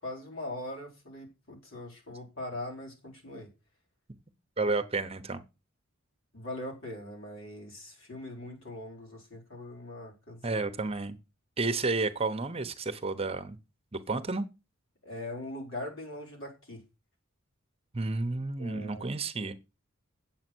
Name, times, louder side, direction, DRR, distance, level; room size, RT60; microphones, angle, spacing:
voice 1, 0.0-3.5 6.3-10.4 15.0-16.8 18.6-19.1, left 1 dB, 70° left, 4.4 m, -41 dB
voice 2, 4.6-5.4 10.4-11.2 11.6-13.6 13.9-14.5 17.9-19.5, right 3 dB, 30° right, 0.9 m, -31 dB
8.7 x 7.4 x 6.2 m
head